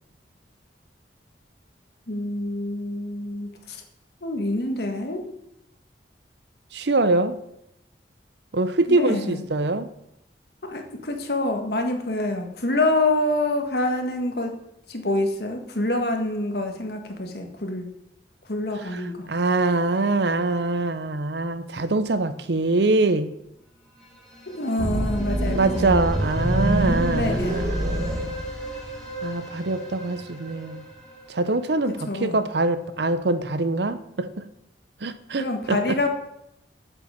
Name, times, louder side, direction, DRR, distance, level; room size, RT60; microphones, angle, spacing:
voice 1, 2.1-3.8 4.2-5.2 8.9-9.4 10.6-14.5 14.9-17.9 18.5-19.3 24.5-26.0 27.1-27.6 32.1-32.4 35.4-36.1, left 2 dB, 60° left, 1.7 m, -26 dB
voice 2, 6.7-7.3 8.5-9.9 18.8-23.3 25.5-28.4 29.2-30.9 31.3-34.5 35.0-36.1, right 2 dB, 70° right, 0.7 m, -24 dB
sound 1, 23.8-32.6, right 2 dB, 5° left, 2.6 m, -38 dB
sound 2, 24.8-29.0, equal, 20° right, 1.6 m, -25 dB
8.3 x 6.8 x 7.4 m
head